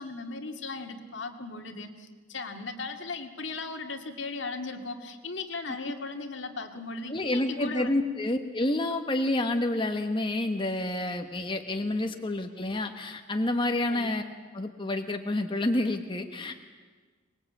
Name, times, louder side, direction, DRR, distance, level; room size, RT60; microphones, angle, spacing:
voice 1, 0.0-8.0 13.9-14.1, left 3 dB, 70° left, 5 dB, 2.1 m, -37 dB
voice 2, 7.1-14.2 14.5-16.5, left 1 dB, 25° left, 5 dB, 1.2 m, -29 dB
24.5 x 20.5 x 8.5 m, 1.4 s
head